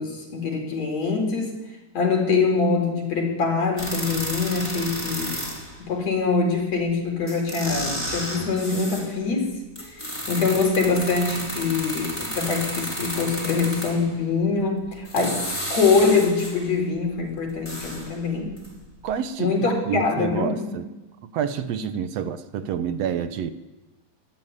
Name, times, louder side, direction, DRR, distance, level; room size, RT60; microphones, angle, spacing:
voice 1, 0.0-1.5 1.9-5.3 5.8-9.5 9.9-10.0 10.3-18.6 19.4-20.7, left 4 dB, 50° left, 2 dB, 5.4 m, -24 dB
sound 1, 3.8-5.8 6.9-7.0 7.3-9.1 9.8-14.1 14.9-16.7 17.1-18.8 19.1-19.2, equal, 5° left, 5.2 m, -32 dB
voice 2, 19.0-19.5 19.9-20.9 21.2-23.5, right 7 dB, 65° right, 11 dB, 1.7 m, -28 dB
22.5 x 13.5 x 9.9 m, 1.1 s
omnidirectional pair, 4.0 m